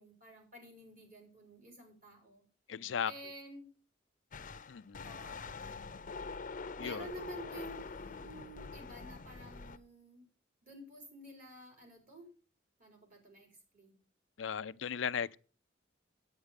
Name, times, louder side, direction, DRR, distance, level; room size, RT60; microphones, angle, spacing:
voice 1, 0.0-2.4 3.0-3.7 5.0-5.8 6.8-10.2 10.6-12.3 12.8-14.0, right 1 dB, 50° right, 4.8 m, -51 dB
voice 2, 2.7-3.1 4.7-5.1 6.8-7.1 14.4-15.3, left 7 dB, 90° left, 0.5 m, -36 dB
sound 1, 4.3-9.8, left 4 dB, 45° left, 0.7 m, -45 dB
10.0 x 8.9 x 5.2 m
head